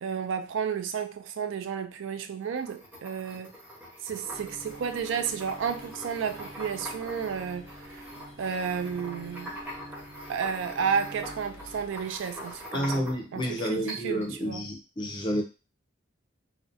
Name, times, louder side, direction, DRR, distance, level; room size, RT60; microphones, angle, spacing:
voice 1, 0.0-3.5 4.0-8.1 8.4-9.5 10.3-13.0 13.3-14.6, right 6 dB, 70° right, 0.3 m, -32 dB
sound 1, 2.4-13.4 13.9-14.3, equal, 10° right, 0.8 m, -43 dB
Bowed string instrument, 4.3-11.8, right 1 dB, 30° right, 0.6 m, -48 dB
sound 2, 4.7-12.7, left 2 dB, 80° left, 0.5 m, -53 dB
voice 2, 12.7-15.4, equal, 25° left, 0.4 m, -30 dB
2.5 x 2.1 x 2.5 m
head